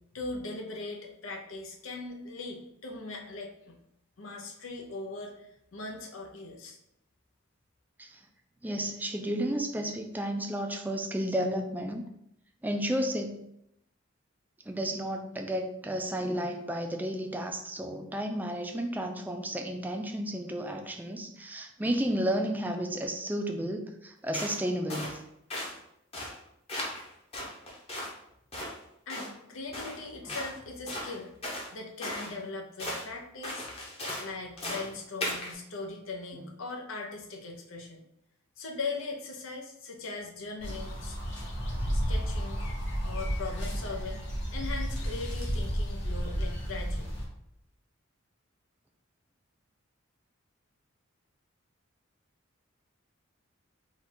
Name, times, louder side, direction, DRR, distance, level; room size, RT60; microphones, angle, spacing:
voice 1, 0.1-3.8 4.2-6.8 29.1-31.3 31.7-33.7 34.2-38.0 38.6-41.2 41.9-42.7 43.0-44.2 44.5-47.1, left 3 dB, 80° left, 1 dB, 0.8 m, -40 dB
voice 2, 8.6-12.1 12.6-13.4 14.7-25.2 30.3-30.4 36.3-36.4, equal, 10° right, 4 dB, 0.3 m, -32 dB
sound 1, 24.3-24.6 24.9-25.2 25.5-25.8 26.1-26.4 26.7-27.1 27.3-28.2 28.5-28.7 29.1-29.3 29.7-30.0 30.3-30.5 30.9-31.7 32.0-32.3 32.8-33.1 33.4-34.3 34.6-34.9 35.2-35.5, left 1 dB, 30° left, 0.9 m, -36 dB
sound 2, 40.6-47.2, equal, 55° left, 1.2 m, -32 dB
3.9 x 2.4 x 4.3 m, 0.78 s
head